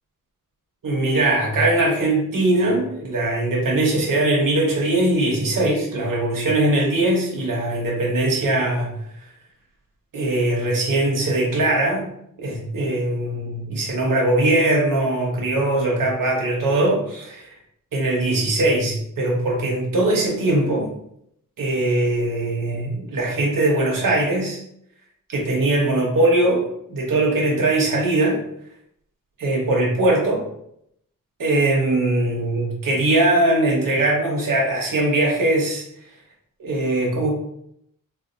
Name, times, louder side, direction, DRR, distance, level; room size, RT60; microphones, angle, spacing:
voice 1, 0.8-8.9 10.1-12.1 12.4-17.5 17.9-20.9 21.6-24.6 25.3-26.6 26.9-28.4 29.4-30.4 31.4-35.8 36.6-37.3, right 2 dB, 75° right, -3 dB, 1.0 m, -21 dB
4.2 x 2.4 x 2.5 m, 0.73 s
wide cardioid pair, 140°, 33 cm